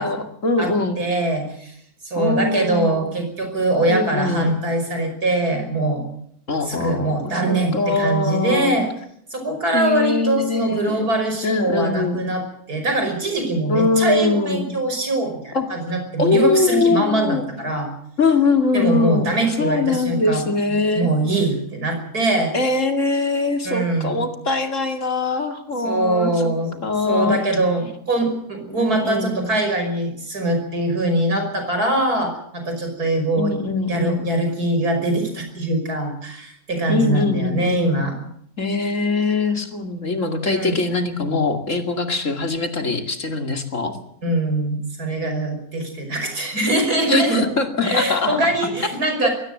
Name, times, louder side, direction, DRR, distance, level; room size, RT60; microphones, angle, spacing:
voice 1, 0.0-1.0 2.2-3.1 3.9-4.5 6.5-8.8 9.7-11.2 11.4-12.2 13.7-14.7 15.5-15.7 16.2-17.4 18.2-19.3 19.6-21.1 22.5-26.5 26.8-27.4 28.7-29.5 33.4-34.3 36.9-38.0 38.6-44.0 47.1-48.4, left 3 dB, 55° left, 6 dB, 2.8 m, -22 dB
voice 2, 1.0-1.7 2.0-6.0 6.7-8.9 9.3-12.4 12.7-17.9 18.7-20.5 20.9-22.5 23.6-24.2 25.8-26.8 27.1-33.5 33.9-38.1 40.4-40.8 44.2-47.5 47.8-49.3, right 2 dB, 90° right, 5 dB, 6.2 m, -22 dB
22.0 x 18.0 x 7.9 m, 0.69 s
omnidirectional pair, 1.6 m